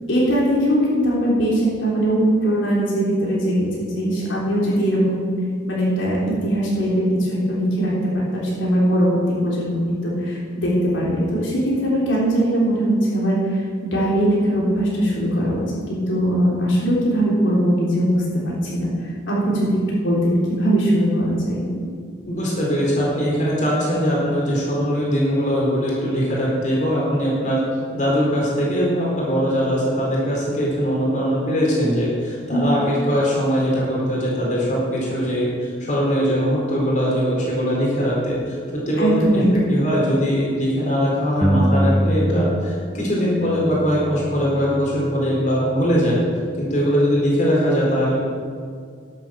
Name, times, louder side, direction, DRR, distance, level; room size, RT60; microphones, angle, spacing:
voice 1, 0.1-5.3 5.7-7.9 8.3-15.6 15.9-18.9 19.3-21.8 32.5-32.6 39.0-39.7, equal, 80° left, -5 dB, 3.5 m, -20 dB
voice 2, 22.2-27.6 27.9-39.4 39.7-46.2 46.6-48.2, equal, 40° left, -5 dB, 4.1 m, -21 dB
sound 1, 41.4-42.9 43.2-44.9, equal, 5° right, 0.6 m, -23 dB
11.5 x 8.4 x 7.7 m, 2.1 s
head